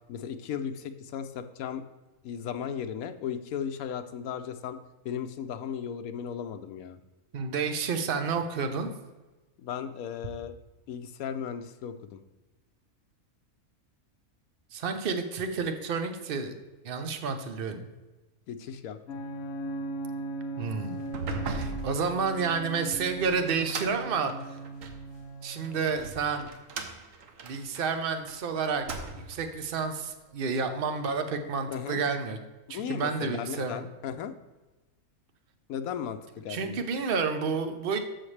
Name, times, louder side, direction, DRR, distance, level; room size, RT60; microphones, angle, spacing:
voice 1, 0.1-1.8 2.2-4.8 5.0-7.0 9.6-10.5 10.9-12.2 18.5-19.0 31.7-32.0 32.7-34.3 35.7-36.8, left 8 dB, 80° left, 9 dB, 1.1 m, -36 dB
voice 2, 7.3-8.9 14.7-16.5 16.8-17.9 20.6-21.0 21.4-24.6 25.4-26.5 27.4-28.8 29.1-32.4 32.7-33.8 36.5-38.0, right 5 dB, 45° right, 7 dB, 0.9 m, -30 dB
sound 1, 19.1-26.1, right 2 dB, 55° left, 1.0 m, -38 dB
sound 2, 21.0-25.1 25.6-28.4 28.7-29.5, right 3 dB, 65° right, 1.2 m, -39 dB
14.0 x 5.8 x 3.3 m, 1.2 s
omnidirectional pair, 1.5 m